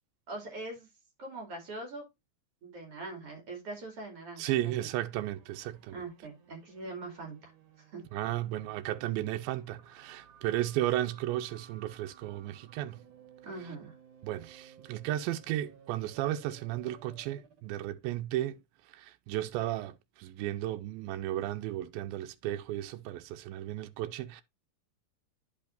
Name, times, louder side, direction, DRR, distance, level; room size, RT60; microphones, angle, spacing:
voice 1, 0.3-0.9 1.2-2.1 2.6-4.9 5.9-7.5 7.8-8.0 13.4-13.9, right 2 dB, 45° right, 3.4 m, -42 dB
voice 2, 4.4-6.0 8.1-13.0 14.2-18.6 18.9-24.4, right 14 dB, 85° right, 2.4 m, -34 dB
sound 1, 5.0-17.7, right 7 dB, 65° right, 2.9 m, -58 dB
11.0 x 5.4 x 2.6 m
omnidirectional pair, 4.1 m